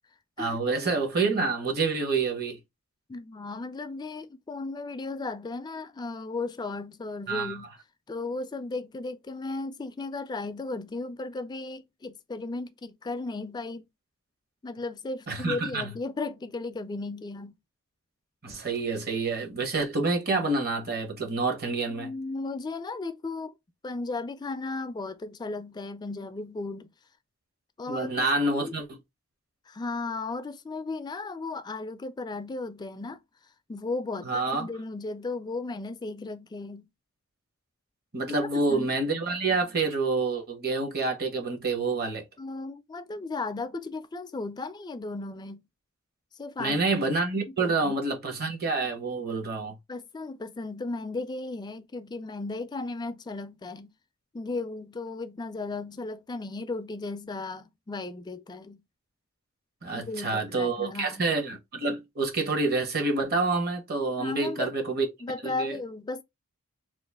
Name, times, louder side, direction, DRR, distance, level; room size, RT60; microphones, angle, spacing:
voice 1, 0.4-2.6 7.3-7.6 15.3-15.9 18.4-22.1 27.9-29.0 34.2-34.7 38.1-42.2 46.6-49.7 59.8-65.1 65.4-65.8, right 3 dB, 45° right, 1.0 m, -28 dB
voice 2, 3.1-7.7 8.1-13.9 14.6-17.6 21.9-23.5 23.8-26.9 27.8-28.7 29.7-33.2 33.7-36.9 38.4-38.9 42.4-45.7 46.3-46.8 47.5-48.0 49.9-53.9 54.3-58.8 59.9-61.3 64.2-64.7 65.2-66.2, left 3 dB, 20° left, 0.3 m, -35 dB
3.0 x 2.4 x 3.4 m
head